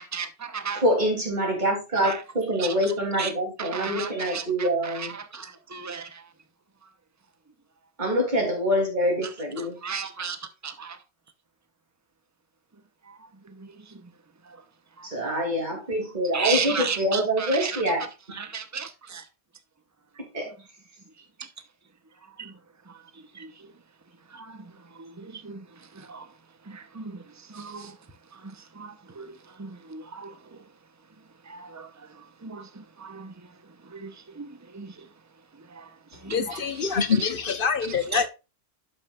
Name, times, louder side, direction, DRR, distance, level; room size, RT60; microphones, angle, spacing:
voice 1, 0.0-0.8 2.0-2.2 2.6-3.3 3.6-6.3 6.8-6.9 9.2-11.0 13.0-14.1 14.4-14.6 15.0-15.3 15.9-16.0 16.3-18.0 18.3-19.3 21.4-21.5 22.4-22.6 22.8-23.7 24.3-26.4 26.6-28.0 28.3-30.7 31.4-35.1 35.5-37.2 37.9-38.3, right 5 dB, 15° right, 0.8 m, -36 dB
voice 2, 0.8-5.1 8.0-9.8 15.0-18.4 20.3-20.5, equal, 40° right, 3.0 m, -25 dB
voice 3, 36.2-38.3, left 6 dB, 55° left, 1.0 m, -25 dB
11.5 x 5.7 x 2.4 m
omnidirectional pair, 1.2 m